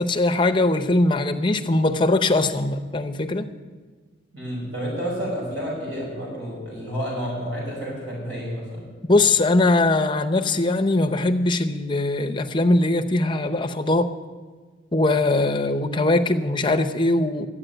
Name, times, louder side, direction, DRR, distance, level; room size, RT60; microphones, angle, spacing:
voice 1, 0.0-3.5 9.1-14.1 14.9-17.5, left 2 dB, 25° left, 6 dB, 0.7 m, -21 dB
voice 2, 4.3-8.9, equal, 70° right, -5 dB, 5.6 m, -30 dB
12.0 x 8.4 x 9.0 m, 1.4 s
head